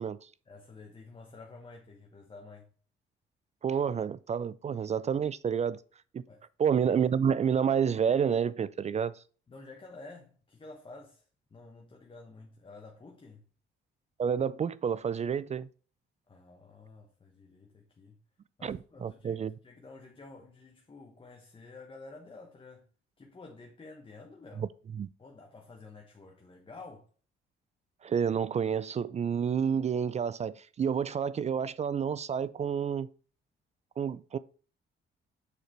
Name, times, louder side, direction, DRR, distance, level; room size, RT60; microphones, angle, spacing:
voice 1, 0.5-2.7 6.3-6.4 9.5-11.2 11.5-13.4 16.3-18.2 18.6-22.9 23.2-24.7 25.2-27.1, left 3 dB, 25° left, 1.2 m, -50 dB
voice 2, 3.6-5.8 6.1-6.2 6.6-9.2 14.2-15.7 18.6-19.5 24.6-24.7 24.9-25.1 28.0-33.1 34.0-34.4, right 7 dB, 35° right, 0.3 m, -29 dB
6.7 x 4.9 x 4.4 m
cardioid pair, 90°, 20 cm